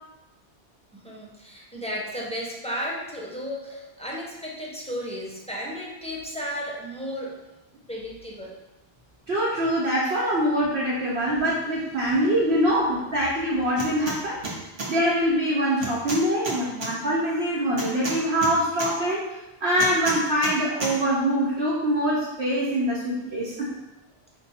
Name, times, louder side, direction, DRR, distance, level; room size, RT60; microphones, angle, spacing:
voice 1, 0.9-7.4 7.9-8.6 11.3-11.4 12.0-12.2 23.2-23.4, equal, 10° left, -4 dB, 0.5 m, -34 dB
voice 2, 9.3-14.4 14.9-19.3 19.6-23.8, equal, 80° right, -6 dB, 1.1 m, -24 dB
sound 1, 13.8-14.2 14.4-14.9 15.8-16.9 17.8-18.9 19.8-20.5 20.8-20.9, right 2 dB, 35° right, 0.8 m, -30 dB
4.6 x 2.2 x 4.1 m, 0.98 s
omnidirectional pair, 1.1 m